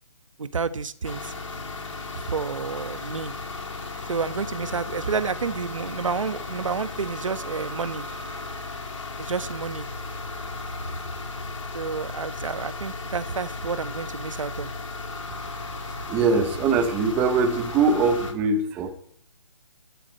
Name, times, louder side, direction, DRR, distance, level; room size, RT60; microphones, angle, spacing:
voice 1, 0.4-1.3 2.1-3.3 4.1-8.0 9.2-9.9 11.7-14.7, right 5 dB, 80° right, 1.2 m, -30 dB
sound 1, 1.0-18.3, left 3 dB, 80° left, 3.7 m, -35 dB
voice 2, 16.1-18.9, right 4 dB, 10° right, 0.8 m, -22 dB
21.5 x 11.0 x 4.4 m
hypercardioid pair, 165°, 16 cm